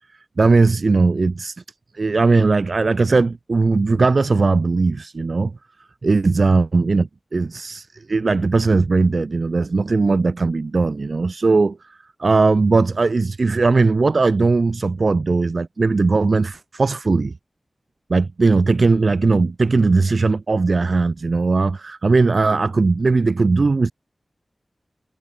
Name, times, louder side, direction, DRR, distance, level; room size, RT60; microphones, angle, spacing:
voice 1, 0.4-1.6 1.9-5.6 6.0-17.3 18.1-23.9, right 3 dB, 65° right, 2.0 m, -18 dB
wide cardioid pair, 55°, 0 cm